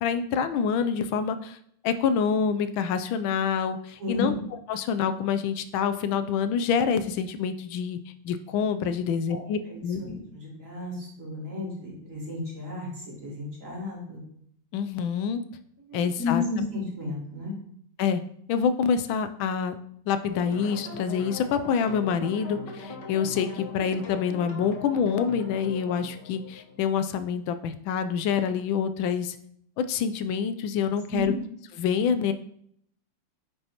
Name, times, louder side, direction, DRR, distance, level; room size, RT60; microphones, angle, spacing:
voice 1, 0.0-1.6 1.8-4.3 4.7-8.0 8.2-10.0 14.7-15.4 15.9-16.4 18.0-18.2 18.5-29.3 29.8-31.3 31.8-32.3, left 7 dB, 90° left, 10 dB, 1.4 m, -26 dB
voice 2, 4.0-4.3 9.3-14.2 15.9-17.5 31.1-31.3, left 3 dB, 40° right, -6 dB, 3.1 m, -33 dB
sound 1, 20.3-27.3, left 3 dB, 65° left, 1.7 m, -40 dB
9.3 x 5.6 x 2.9 m, 0.67 s
omnidirectional pair, 2.1 m